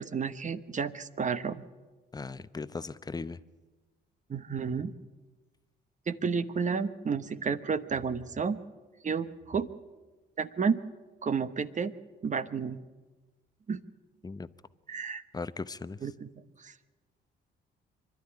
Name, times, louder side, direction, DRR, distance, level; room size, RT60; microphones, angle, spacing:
voice 1, 0.0-1.7 4.3-4.9 6.1-8.6 9.0-9.7 10.4-10.8 11.2-11.9 12.2-12.8 13.7-13.8 14.9-15.2 16.0-16.3 16.6-16.7, right 5 dB, 40° right, 1.1 m, -31 dB
voice 2, 2.1-3.4 14.2-14.5 15.3-16.1, left 4 dB, 20° left, 0.7 m, -38 dB
24.5 x 12.0 x 9.9 m
cardioid pair, 90°, 20 cm